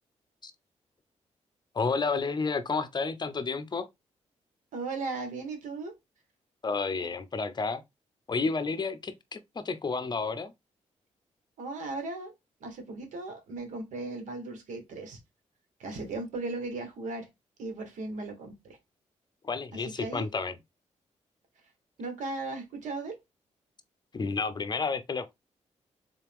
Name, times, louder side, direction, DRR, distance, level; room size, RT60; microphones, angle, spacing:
voice 1, 1.7-3.9 6.6-7.8 8.3-10.5 19.4-20.5 24.1-25.3, left 4 dB, 35° left, 0.6 m, -31 dB
voice 2, 4.7-5.9 11.6-12.3 12.6-15.2 15.8-17.3 17.6-18.8 19.7-20.2 22.0-23.2, right 3 dB, 85° right, 1.3 m, -37 dB
3.8 x 2.9 x 3.4 m
cardioid pair, 70°, 13 cm